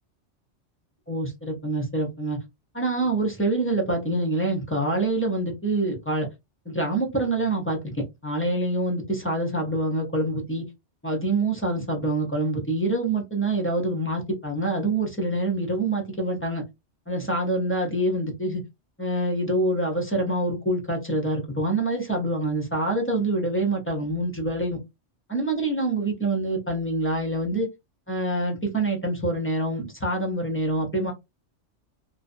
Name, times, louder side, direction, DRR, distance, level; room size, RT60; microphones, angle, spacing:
voice 1, 1.1-2.4 2.7-6.3 6.7-7.8 8.2-10.6 11.0-16.6 17.1-18.6 19.0-24.8 25.3-27.7 28.1-31.1, right 2 dB, 15° left, 1 dB, 0.5 m, -26 dB
2.6 x 2.2 x 2.5 m, 0.22 s
omnidirectional pair, 1.2 m